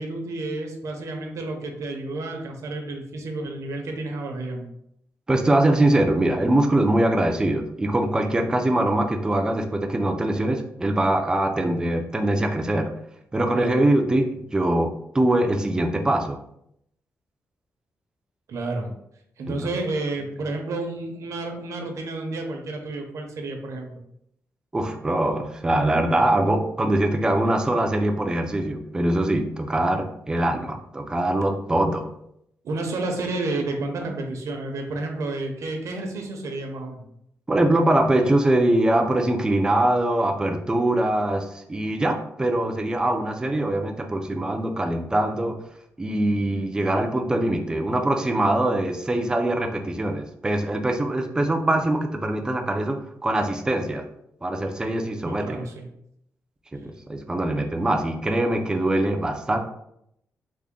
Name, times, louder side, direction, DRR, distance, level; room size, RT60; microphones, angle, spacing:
voice 1, 0.0-4.7 13.5-13.7 18.5-18.9 19.4-24.0 32.6-37.0 55.2-55.9, right 2 dB, 65° right, 3 dB, 0.7 m, -31 dB
voice 2, 5.3-12.9 13.3-16.4 19.5-19.6 24.7-32.1 37.5-45.5 46.0-54.0 54.4-55.6 56.8-59.6, right 1 dB, 15° right, 4 dB, 0.4 m, -23 dB
3.4 x 2.1 x 3.7 m, 0.76 s
wide cardioid pair, 135°, 6 cm